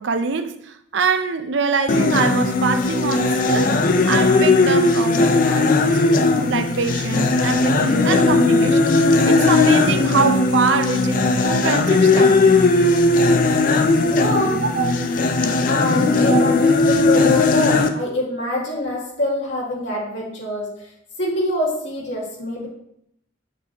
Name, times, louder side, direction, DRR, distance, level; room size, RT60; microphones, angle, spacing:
voice 1, 0.0-3.8 4.0-5.9 6.5-9.0 9.3-12.5 14.6-14.9 16.3-16.4, right 5 dB, 65° right, 0.5 m, -24 dB
sound 1, 1.9-17.9, left 3 dB, 45° left, 0.4 m, -17 dB
voice 2, 13.9-14.6 15.7-20.7 21.2-22.7, left 1 dB, 65° left, 1.9 m, -24 dB
6.0 x 6.0 x 2.9 m
head